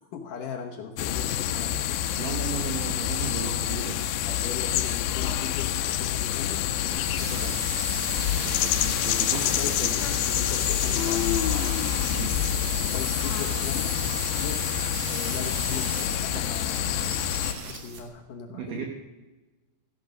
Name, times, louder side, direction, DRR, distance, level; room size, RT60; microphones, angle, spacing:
voice 1, 0.1-2.0 4.3-7.7 9.5-11.2 12.9-14.0 14.4-16.9 17.6-18.9, left 7 dB, 70° left, 2 dB, 2.1 m, -38 dB
sound 1, 1.0-17.5, left 11 dB, 85° left, 2.9 m, -27 dB
voice 2, 2.2-4.0 8.4-9.5 9.8-9.9 12.1-12.4 18.5-18.9, right 6 dB, 70° right, 3 dB, 2.0 m, -35 dB
sound 2, 6.9-18.0, right 5 dB, 55° right, 2.4 m, -37 dB
14.5 x 11.5 x 5.1 m, 1.2 s
omnidirectional pair, 5.0 m